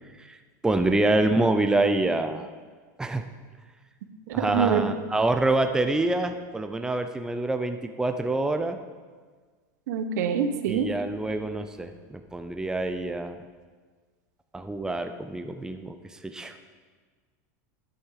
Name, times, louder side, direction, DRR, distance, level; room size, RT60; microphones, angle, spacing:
voice 1, 0.6-2.5 3.0-3.2 4.3-8.8 10.7-13.4 14.5-16.5, right 2 dB, 5° right, 7 dB, 0.6 m, -26 dB
voice 2, 4.3-4.8 9.9-10.9, right 7 dB, 75° right, 8 dB, 1.0 m, -25 dB
10.5 x 8.4 x 4.8 m, 1.5 s
supercardioid pair, 120°, 9 cm